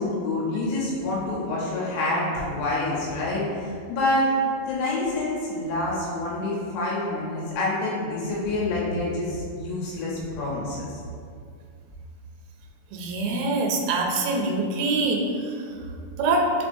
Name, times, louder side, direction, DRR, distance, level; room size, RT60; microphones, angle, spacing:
voice 1, 0.0-4.3 4.6-11.0, left 2 dB, 80° left, -6 dB, 3.2 m, -27 dB
voice 2, 12.9-15.2 16.2-16.5, right 3 dB, 85° right, 1 dB, 2.9 m, -24 dB
6.7 x 2.8 x 2.6 m, 2.3 s
omnidirectional pair, 5.4 m